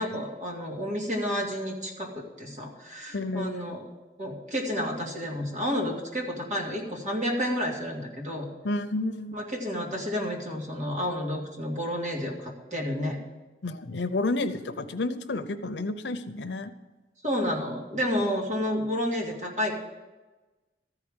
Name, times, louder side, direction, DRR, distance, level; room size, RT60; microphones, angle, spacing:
voice 1, 0.0-3.8 4.2-8.5 9.3-13.2 17.2-19.7, equal, 45° right, -1 dB, 2.2 m, -30 dB
voice 2, 3.1-3.6 8.6-9.4 13.6-16.7, left 2 dB, 85° left, 9 dB, 0.7 m, -30 dB
14.0 x 4.9 x 8.9 m, 1.2 s
head